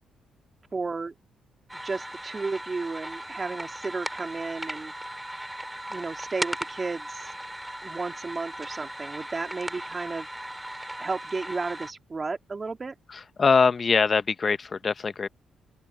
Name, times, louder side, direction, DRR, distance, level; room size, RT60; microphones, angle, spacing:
voice 1, 0.7-1.1 1.7-4.9 5.9-7.3 7.8-10.3 11.0-12.9, right 4 dB, 25° right, 2.8 m, -33 dB
sound 1, 1.7-11.9, right 1 dB, 5° right, 2.8 m, -37 dB
voice 2, 13.1-15.3, left 5 dB, 35° left, 0.9 m, -23 dB
open air
cardioid pair, 115°, 0 cm